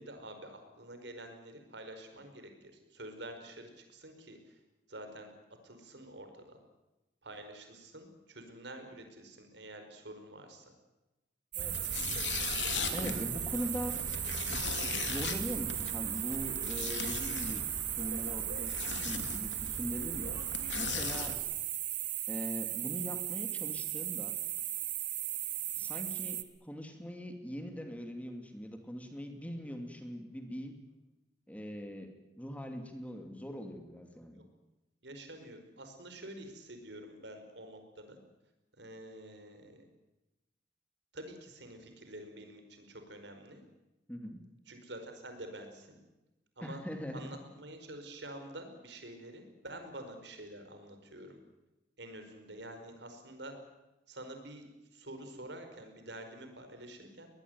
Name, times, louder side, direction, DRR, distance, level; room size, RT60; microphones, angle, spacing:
voice 1, 0.0-2.5 2.9-4.6 4.9-5.3 5.6-6.6 7.2-10.7 25.6-25.9 34.3-34.5 35.0-38.2 38.8-39.8 41.1-43.6 44.7-46.0 46.6-46.8 47.1-51.4 52.0-53.5 54.1-54.6 54.9-57.3, right 1 dB, 75° right, 6 dB, 5.2 m, -48 dB
sound 1, 11.5-26.4, right 13 dB, 50° right, 1.5 m, -37 dB
sound 2, 11.6-21.3, left 5 dB, 85° left, 2.9 m, -39 dB
voice 2, 12.9-14.0 14.5-20.4 20.7-21.4 22.3-24.4 25.8-30.8 31.5-34.4 44.1-44.4 46.6-47.4, equal, 10° left, 5 dB, 2.6 m, -41 dB
21.5 x 20.5 x 9.6 m, 1.0 s
head